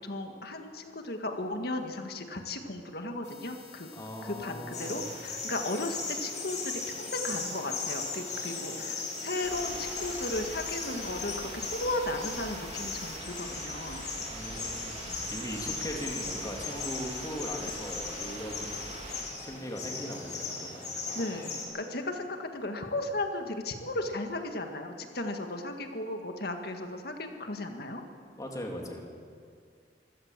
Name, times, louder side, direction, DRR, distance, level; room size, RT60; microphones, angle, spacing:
voice 1, 0.0-3.9 4.2-14.1 21.2-21.5 21.7-28.0, left 2 dB, 60° left, 4 dB, 1.9 m, -35 dB
sound 1, 3.2-13.2, left 7 dB, 85° left, 4.8 m, -53 dB
voice 2, 3.9-5.0 14.2-19.0 19.4-21.0 28.4-29.1, equal, 20° left, 1 dB, 3.0 m, -39 dB
sound 2, 4.7-21.6, left 4 dB, 45° left, 6.1 m, -38 dB
sound 3, 9.4-19.2, right 2 dB, 40° right, 3.3 m, -43 dB
25.5 x 16.5 x 7.5 m, 2.2 s
head